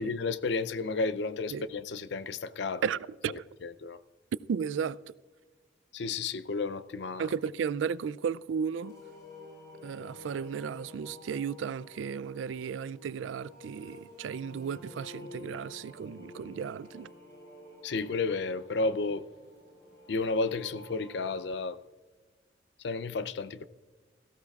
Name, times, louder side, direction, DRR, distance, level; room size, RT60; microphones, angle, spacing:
voice 1, 0.0-2.8 3.3-4.0 5.9-7.2 17.8-19.2 20.1-21.8 22.8-23.6, left 3 dB, 65° left, 0.5 m, -32 dB
voice 2, 2.8-3.4 4.5-5.0 7.2-8.9 9.8-17.1, right 7 dB, 85° right, 0.3 m, -34 dB
sound 1, 8.8-21.4, left 2 dB, 15° left, 4.7 m, -50 dB
17.5 x 15.0 x 2.4 m
head